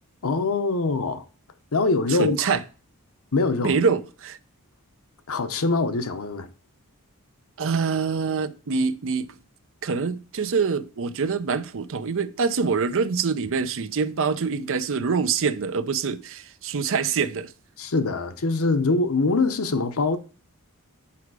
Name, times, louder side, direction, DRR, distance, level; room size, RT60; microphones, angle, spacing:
voice 1, 0.2-1.3 1.7-2.5 3.3-3.7 5.3-6.5 17.8-20.2, left 3 dB, 70° left, 0.8 m, -23 dB
voice 2, 2.1-2.6 3.6-4.4 7.6-9.3 9.8-17.5, right 5 dB, 60° right, 0.6 m, -25 dB
8.5 x 4.8 x 4.8 m
head